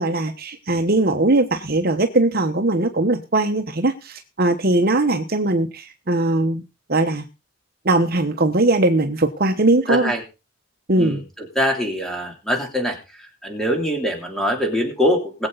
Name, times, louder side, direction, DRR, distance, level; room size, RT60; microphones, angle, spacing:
voice 1, 0.0-6.6 6.9-7.2 7.8-10.1 10.9-11.2, right 2 dB, 45° right, 6 dB, 1.1 m, -20 dB
voice 2, 9.9-10.2 11.0-13.0 13.4-15.5, equal, ahead, 2 dB, 3.3 m, -23 dB
20.5 x 7.9 x 4.0 m, 0.30 s
head